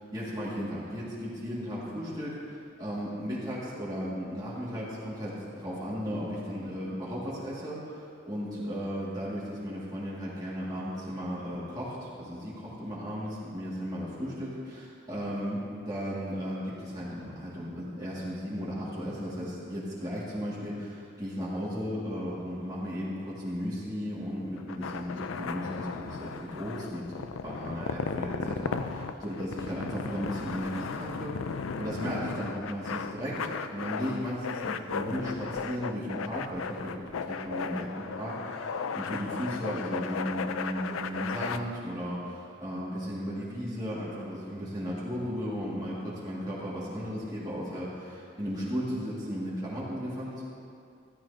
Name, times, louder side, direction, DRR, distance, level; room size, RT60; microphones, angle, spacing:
voice 1, 0.1-50.4, equal, 20° right, -8 dB, 2.0 m, -35 dB
sound 1, 24.6-41.6, left 5 dB, 85° left, 0.4 m, -36 dB
14.0 x 13.5 x 2.8 m, 2.5 s
head